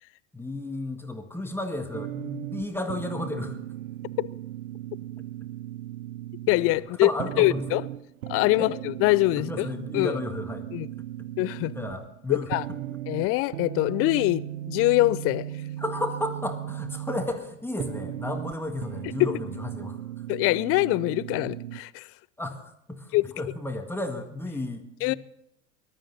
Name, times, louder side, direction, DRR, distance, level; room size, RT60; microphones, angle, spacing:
voice 1, 0.3-3.6 7.0-7.8 8.6-8.7 9.4-10.7 11.2-11.3 11.7-12.8 15.8-20.0 22.4-25.2, left 1 dB, 5° left, 1.7 m, -33 dB
sound 1, 1.9-21.8, right 13 dB, 75° right, 0.6 m, -37 dB
voice 2, 6.5-7.1 7.4-7.8 8.3-9.7 9.9-10.2 10.7-10.9 11.4-11.7 12.3-12.6 13.1-15.5 19.2-19.4 20.3-22.1 23.1-23.2 25.0-25.1, left 20 dB, 35° left, 0.5 m, -23 dB
20.5 x 12.5 x 4.0 m
figure-of-eight pair, 85°, 41 cm